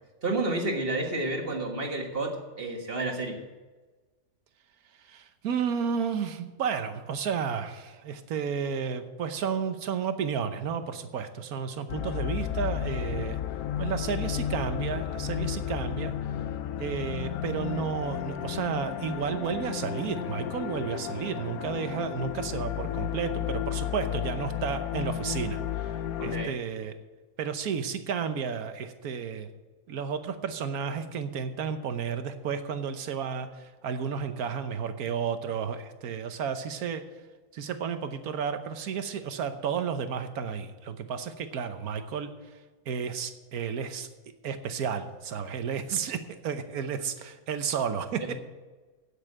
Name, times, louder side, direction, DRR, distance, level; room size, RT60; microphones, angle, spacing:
voice 1, 0.2-3.4 26.2-26.5 48.2-48.3, right 2 dB, 40° right, 2 dB, 1.7 m, -30 dB
voice 2, 5.1-13.4 13.8-16.1 16.8-25.6 26.2-26.9 27.4-29.5 29.9-33.5 33.8-37.0 37.5-42.3 42.9-44.1 44.4-48.3, right 7 dB, 85° right, 9 dB, 1.4 m, -32 dB
sound 1, 11.9-26.5, left 10 dB, 85° left, 1.1 m, -33 dB
9.0 x 8.2 x 8.7 m, 1.3 s
omnidirectional pair, 1.5 m